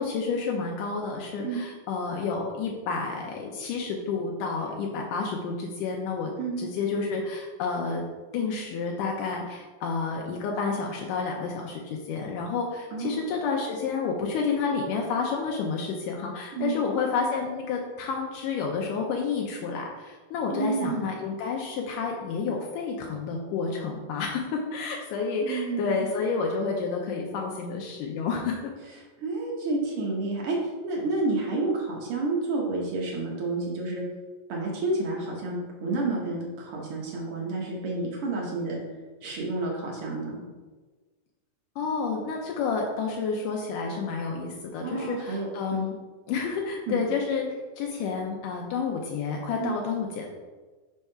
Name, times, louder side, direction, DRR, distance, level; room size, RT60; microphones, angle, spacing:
voice 1, 0.0-6.3 6.6-8.0 8.3-28.7 41.8-46.0 46.3-47.4 47.8-50.3, left 5 dB, 80° left, 0 dB, 2.2 m, -30 dB
voice 2, 20.5-21.1 25.4-26.1 29.2-30.6 30.8-34.0 34.5-38.8 39.2-40.4 44.8-45.9 46.9-47.0 49.6-49.8, right 3 dB, 70° right, -2 dB, 1.3 m, -30 dB
5.3 x 3.5 x 5.5 m, 1.3 s
omnidirectional pair, 3.8 m